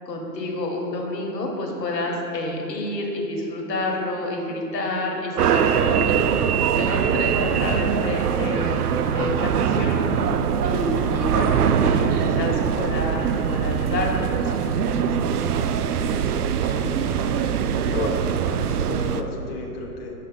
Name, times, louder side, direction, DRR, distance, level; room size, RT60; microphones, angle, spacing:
voice 1, 0.0-6.3 6.7-10.0 10.6-13.2 13.5-14.5 14.9-15.2, left 2 dB, 85° left, -1 dB, 1.5 m, -29 dB
sound 1, 5.4-19.2, right 7 dB, 70° right, 0.5 m, -22 dB
voice 2, 16.6-17.3 17.9-20.1, left 3 dB, 40° left, -1 dB, 0.7 m, -33 dB
6.1 x 5.5 x 3.9 m, 2.7 s
hypercardioid pair, 150°, 48 cm